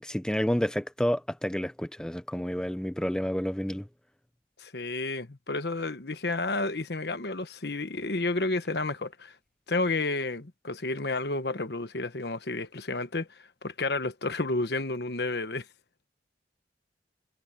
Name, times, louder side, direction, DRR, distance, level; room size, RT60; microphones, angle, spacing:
voice 1, 0.0-3.9, equal, 5° left, 0.4 m, -29 dB
voice 2, 4.6-9.3 9.7-15.7, left 2 dB, 65° left, 1.2 m, -31 dB
head